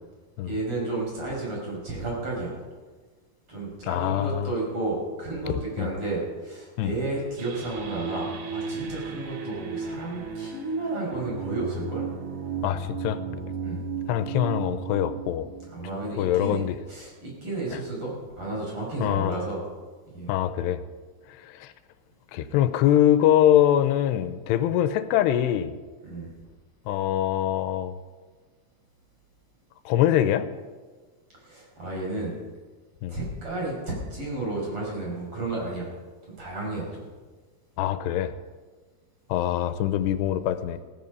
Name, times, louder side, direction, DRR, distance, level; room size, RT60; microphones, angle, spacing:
voice 1, 0.4-2.6 3.5-12.1 13.6-13.8 15.7-16.6 16.9-19.6 20.1-20.3 26.0-26.3 31.4-32.3 33.1-35.9 36.4-37.1, right 2 dB, 30° right, -3 dB, 6.4 m, -32 dB
voice 2, 3.8-4.5 5.8-5.9 6.8-6.9 12.6-13.2 14.1-15.5 16.2-16.8 17.7-17.8 19.0-19.4 20.3-20.9 21.3-21.7 22.3-25.8 26.9-28.0 29.9-30.5 33.0-33.2 37.8-38.3 39.3-40.8, left 11 dB, 90° left, 11 dB, 2.8 m, -23 dB
sound 1, 7.4-16.7, right 5 dB, 60° right, 1.7 m, -35 dB
16.5 x 14.5 x 5.4 m, 1.4 s
omnidirectional pair, 4.8 m